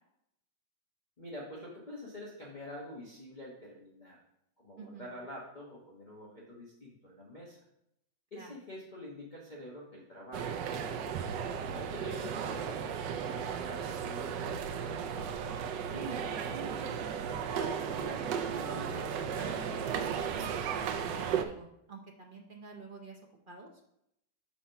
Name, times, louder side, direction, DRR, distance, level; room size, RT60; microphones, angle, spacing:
voice 1, 1.2-4.2 4.6-7.6 8.3-11.1 11.7-15.3, left 1 dB, 30° left, -6 dB, 1.2 m, -47 dB
voice 2, 4.8-5.1 8.3-8.5 15.9-16.9 17.6-23.2 23.5-23.7, right 3 dB, 60° right, 1 dB, 0.5 m, -46 dB
sound 1, 10.3-21.4, right 7 dB, 80° right, 1.2 m, -35 dB
6.0 x 4.1 x 5.7 m, 0.79 s
omnidirectional pair, 1.9 m